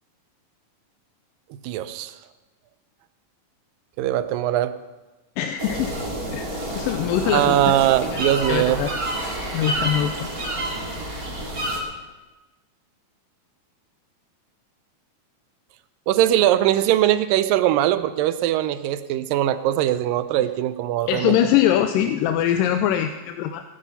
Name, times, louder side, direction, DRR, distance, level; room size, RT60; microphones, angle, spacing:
voice 1, 1.6-2.1 4.0-4.8 7.2-8.8 16.1-21.4, right 12 dB, 85° right, 13 dB, 2.4 m, -21 dB
voice 2, 5.4-5.9 6.3-7.7 8.1-8.2 8.5-8.9 9.2-10.3 21.1-23.6, left 11 dB, 85° left, 7 dB, 2.3 m, -23 dB
sound 1, 5.6-11.8, right 1 dB, 30° right, 2.6 m, -29 dB
17.5 x 10.5 x 5.5 m, 1.1 s
omnidirectional pair, 3.9 m